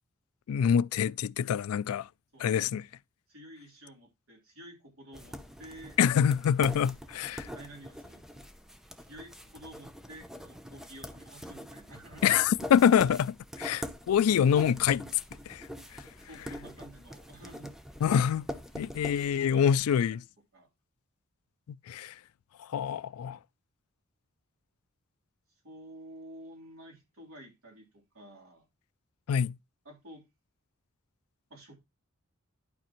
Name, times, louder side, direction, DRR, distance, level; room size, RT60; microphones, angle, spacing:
voice 1, 0.5-2.1 2.4-2.8 6.0-7.5 12.2-15.1 15.5-15.7 18.0-18.5 18.8-20.2 21.9-22.1 22.7-23.4 29.3-29.5, left 8 dB, 85° left, 0.3 m, -25 dB
voice 2, 3.3-6.0 7.5-8.2 9.0-12.3 16.2-17.7 18.9-20.0 20.5-20.7 25.6-28.6 29.8-30.3 31.5-31.8, right 1 dB, 80° right, 3.5 m, -51 dB
sound 1, 5.1-20.0, equal, ahead, 0.6 m, -44 dB
11.5 x 5.1 x 3.0 m
head